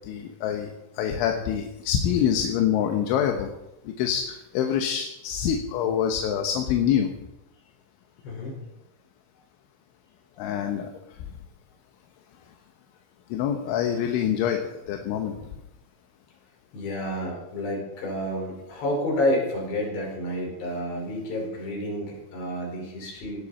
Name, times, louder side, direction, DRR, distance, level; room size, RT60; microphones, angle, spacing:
voice 1, 0.1-0.7 1.0-3.5 4.0-7.1 10.4-10.9 13.3-14.6 14.9-15.4, left 9 dB, 85° left, 4 dB, 3.6 m, -25 dB
voice 2, 8.2-8.6 16.7-23.5, left 1 dB, 65° left, -1 dB, 7.1 m, -29 dB
18.5 x 17.5 x 4.4 m, 0.92 s
omnidirectional pair, 5.3 m